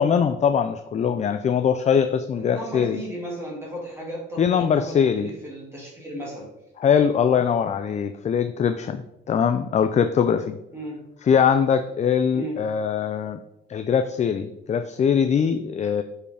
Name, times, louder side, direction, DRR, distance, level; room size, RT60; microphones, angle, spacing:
voice 1, 0.0-3.0 4.4-5.3 6.8-10.6 11.2-13.4 13.7-16.0, left 7 dB, 35° left, 9 dB, 0.4 m, -22 dB
voice 2, 2.4-6.5 10.7-11.0 12.3-12.6, right 1 dB, 15° right, -4 dB, 2.3 m, -35 dB
7.4 x 4.7 x 3.4 m, 0.84 s
cardioid pair, 90°, 20 cm